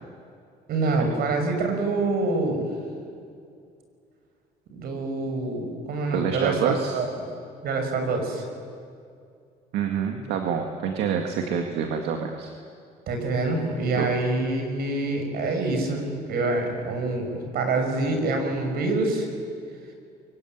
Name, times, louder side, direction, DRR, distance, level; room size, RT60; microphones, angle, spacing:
voice 1, 0.7-2.7 4.7-7.3 7.6-8.4 13.1-19.3, right 2 dB, 70° right, 4 dB, 6.1 m, -26 dB
voice 2, 6.1-6.9 9.7-12.5 13.9-14.1, right 7 dB, 85° right, 3 dB, 2.0 m, -27 dB
24.0 x 23.5 x 9.4 m, 2.3 s
cardioid pair, 110°, 17 cm